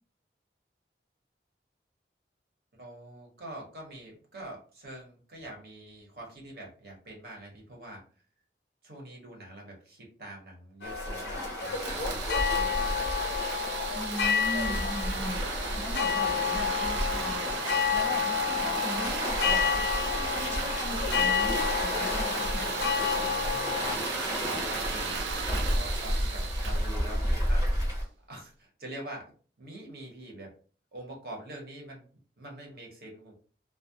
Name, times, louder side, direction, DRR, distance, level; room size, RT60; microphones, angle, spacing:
voice 1, 2.8-8.0 8.8-13.3 23.4-24.0 24.4-28.0 28.3-29.3 29.6-30.5 30.9-32.1 32.4-33.4, right 1 dB, 55° right, -1 dB, 0.9 m, -45 dB
sound 1, 10.8-24.0, left 7 dB, 75° left, 0.4 m, -30 dB
Waves surf, 10.8-28.0, equal, 20° right, 0.8 m, -33 dB
sound 2, 11.6-27.8, right 5 dB, 85° right, 0.4 m, -36 dB
voice 2, 13.9-15.5 15.8-22.7, equal, 5° left, 0 dB, 0.3 m, -39 dB
2.3 x 2.1 x 2.7 m, 0.39 s
head